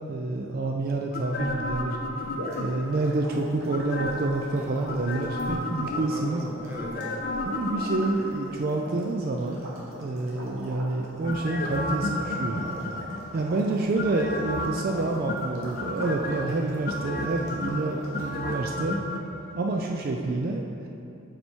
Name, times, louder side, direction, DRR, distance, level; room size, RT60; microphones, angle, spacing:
voice 1, 0.1-2.0 2.6-6.4 7.4-9.6 10.0-12.7 13.3-19.0 19.5-20.9, right 2 dB, 45° right, 1 dB, 0.3 m, -28 dB
sound 1, 1.1-3.0 3.7-4.4 4.9-6.3 6.7-8.4 11.2-13.4 14.0-14.9 15.3-16.4 16.8-19.2 19.5-19.6, left 1 dB, 45° left, 0.4 m, -32 dB
voice 2, 2.1-2.4 4.5-4.9 5.3-7.2, right 1 dB, 10° right, -2 dB, 0.6 m, -40 dB
sound 2, 2.2-18.6, equal, 80° right, 1.4 m, -41 dB
7.8 x 4.2 x 4.4 m, 2.7 s
head